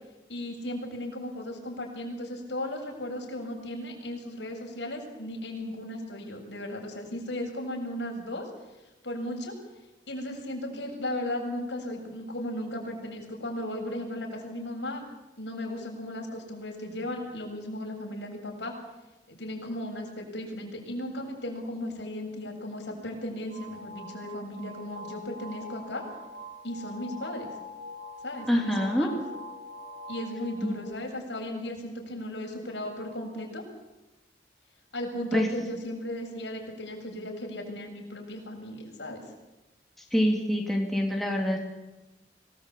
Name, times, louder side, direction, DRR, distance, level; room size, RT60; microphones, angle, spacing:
voice 1, 0.3-8.5 9.0-9.6 10.1-15.0 15.4-18.7 19.3-26.0 26.6-27.5 28.2-29.1 30.1-33.6 34.9-39.2, left 1 dB, 90° left, 0 dB, 7.6 m, -36 dB
sound 1, 23.5-31.0, left 1 dB, 55° right, 6.0 m, -43 dB
voice 2, 28.5-29.1 30.6-30.7 35.3-35.5 40.1-41.6, equal, ahead, 0 dB, 3.4 m, -25 dB
26.0 x 19.5 x 8.6 m, 1.0 s
head